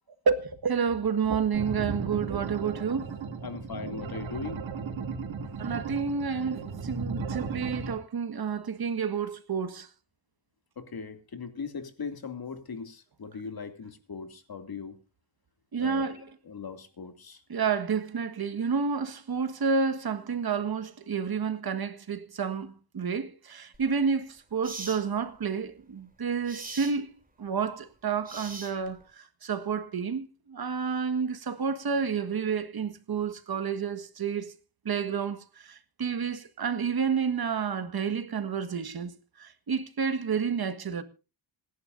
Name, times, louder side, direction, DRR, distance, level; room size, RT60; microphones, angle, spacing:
voice 1, 0.3-3.1 5.6-9.9 15.7-16.3 17.5-34.5 34.9-41.0, right 6 dB, 55° right, 1.8 m, -30 dB
sound 1, 1.5-7.9, right 5 dB, 85° right, 2.7 m, -36 dB
voice 2, 3.4-4.6 10.8-14.9 15.8-16.1 16.5-17.4, left 5 dB, 55° left, 2.7 m, -39 dB
sound 2, 23.7-23.9 24.6-25.0 26.5-27.0 28.2-29.0, right 2 dB, 20° right, 3.3 m, -41 dB
27.0 x 11.0 x 2.7 m
cardioid pair, 95°, 45 cm